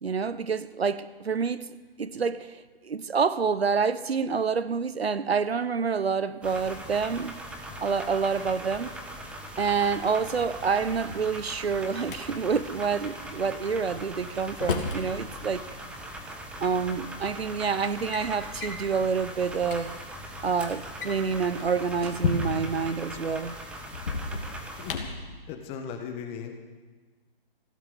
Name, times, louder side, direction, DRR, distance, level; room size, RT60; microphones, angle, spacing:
voice 1, 0.0-1.7 2.0-7.4 7.8-8.9 9.6-15.6 16.6-20.0 20.4-23.6, right 5 dB, 90° right, 0.9 m, -28 dB
sound 1, 6.4-25.0, right 1 dB, 5° right, 0.8 m, -40 dB
Drawer open or close, 10.8-12.2 13.9-15.0 16.3-16.4 17.2-17.5 17.8-18.3 18.6-18.8 19.3-19.4 19.6-19.8 20.8-22.8 23.9-25.3, left 4 dB, 60° left, 2.7 m, -33 dB
voice 2, 25.5-26.6, left 7 dB, 20° left, 1.4 m, -37 dB
16.0 x 12.5 x 7.0 m
hypercardioid pair, 145°, 30 cm